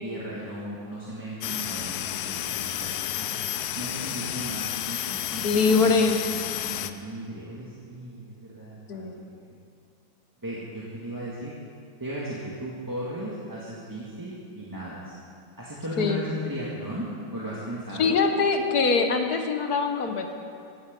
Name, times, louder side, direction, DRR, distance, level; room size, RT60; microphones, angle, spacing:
voice 1, 0.0-3.3 3.7-6.3 6.6-9.6 10.4-11.5 12.0-15.2 15.6-18.1, equal, 10° right, -7 dB, 1.8 m, -36 dB
sound 1, 1.4-6.9, left 11 dB, 75° left, 0.9 m, -31 dB
voice 2, 5.4-6.3 8.9-9.2 16.0-16.2 18.0-20.3, left 4 dB, 50° left, 5 dB, 1.5 m, -23 dB
15.5 x 15.5 x 5.4 m, 2.4 s
omnidirectional pair, 2.3 m